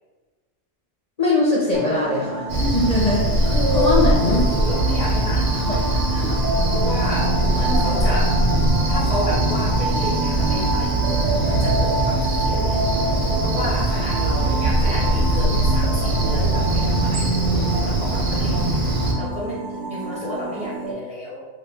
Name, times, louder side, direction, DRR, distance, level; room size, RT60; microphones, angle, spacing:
voice 1, 1.2-4.5 5.7-5.8 7.7-7.9, left 2 dB, 45° left, -5 dB, 0.5 m, -21 dB
sound 1, 1.7-20.9, right 2 dB, 85° right, 1.1 m, -27 dB
Cricket, 2.5-19.1, right 1 dB, 55° right, 0.7 m, -21 dB
voice 2, 3.4-4.0 4.5-6.4 6.7-8.4 8.9-12.8 13.4-21.5, left 1 dB, 10° right, -5 dB, 0.4 m, -31 dB
3.1 x 2.4 x 3.3 m, 1.3 s
omnidirectional pair, 1.2 m